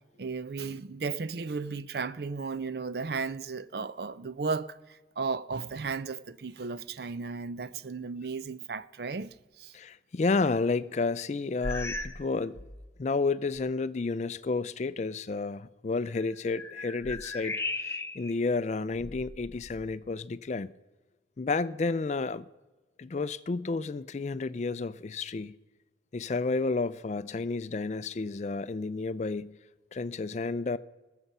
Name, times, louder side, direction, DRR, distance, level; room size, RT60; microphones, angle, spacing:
voice 1, 0.2-9.7, right 4 dB, 55° right, 0.5 m, -35 dB
voice 2, 9.7-12.6 13.0-20.7 21.4-22.5 23.0-25.6 26.1-29.6 29.9-30.8, left 3 dB, 40° left, 0.4 m, -31 dB
sound 1, 11.6-12.3 12.5-12.9 13.6-13.7 16.0-18.4 18.9-19.9, left 2 dB, 15° left, 0.8 m, -37 dB
20.0 x 6.8 x 5.4 m
head